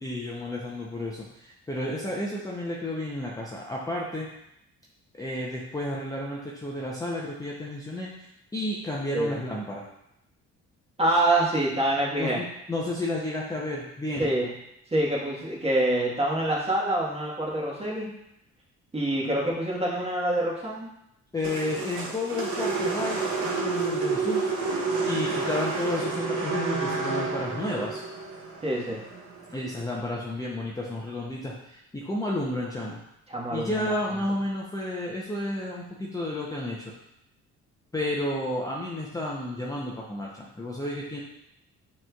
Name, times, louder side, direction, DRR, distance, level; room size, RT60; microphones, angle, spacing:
voice 1, 0.0-4.3 5.2-9.9 12.2-14.3 21.3-24.5 25.0-28.0 29.5-33.0 33.5-36.9 37.9-41.2, left 1 dB, 10° left, -4 dB, 0.6 m, -32 dB
voice 2, 11.0-12.4 14.2-14.5 14.9-18.1 18.9-20.9 28.6-29.0 33.3-33.7, right 1 dB, 20° right, -5 dB, 1.3 m, -26 dB
sound 1, 21.4-29.7, right 4 dB, 75° right, 1.2 m, -29 dB
5.9 x 3.1 x 2.3 m, 0.80 s
cardioid pair, 90°, 30 cm